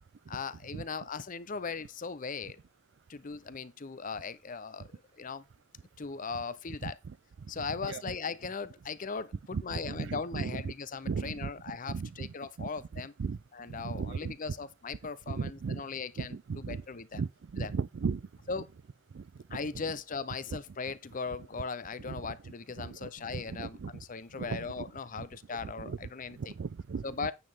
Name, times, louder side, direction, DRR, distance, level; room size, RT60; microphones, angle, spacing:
voice 1, 0.3-2.6 3.1-5.4 6.0-7.0 7.5-13.1 13.5-17.2 17.6-17.7 18.5-18.7 19.5-26.5 27.0-27.3, left 5 dB, 40° left, 0.6 m, -39 dB
voice 2, 6.8-7.1 7.6-8.0 9.5-10.7 11.1-12.3 12.6-13.4 13.7-14.3 15.3-15.8 16.2-16.8 17.1-18.2 19.1-19.2 19.5-19.6 22.0-22.3 22.8-23.9 24.4-24.9 25.6-26.1 26.4-27.0, right 5 dB, 60° right, 0.4 m, -37 dB
9.3 x 7.5 x 3.5 m
head